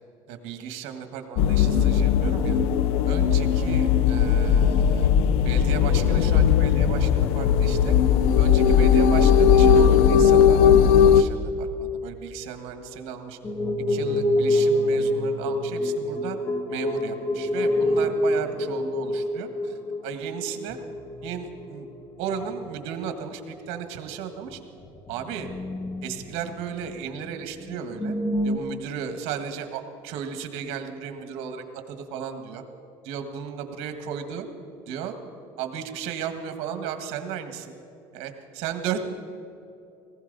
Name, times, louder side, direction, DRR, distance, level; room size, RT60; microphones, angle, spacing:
voice 1, 0.3-2.6 3.1-5.1 5.4-7.9 8.4-13.4 13.9-16.4 16.7-20.8 21.2-21.9 22.2-24.6 25.1-25.5 26.0-28.1 28.4-32.6 33.0-34.4 34.9-35.1 35.6-37.8 38.1-39.0, right 8 dB, 70° right, 7 dB, 1.6 m, -35 dB
sound 1, 1.4-11.2, left 7 dB, 70° left, 0.6 m, -18 dB
sound 2, 13.4-21.9 22.3-22.8 23.2-23.3 23.7-23.8 24.8-27.0 27.3-27.4 27.6-28.6, left 1 dB, 20° left, 1.1 m, -27 dB
19.0 x 16.0 x 4.1 m, 2.8 s
cardioid pair, 120°, 11 cm